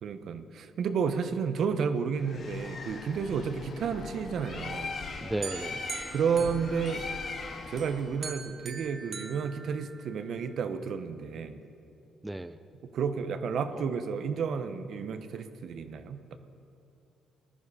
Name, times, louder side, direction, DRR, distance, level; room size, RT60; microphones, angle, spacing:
voice 1, 0.0-4.9 6.1-7.1 7.7-11.6 12.9-16.4, right 6 dB, 65° right, 9 dB, 0.9 m, -31 dB
Bird, 2.2-8.2, left 4 dB, 55° left, 1.8 m, -40 dB
voice 2, 5.2-5.8 12.2-12.6, right 1 dB, 10° right, 11 dB, 0.5 m, -34 dB
sound 1, 5.4-7.4 7.8-10.3, right 5 dB, 45° right, 1.1 m, -43 dB
19.5 x 11.5 x 4.9 m, 2.7 s
cardioid pair, 85°, 0 cm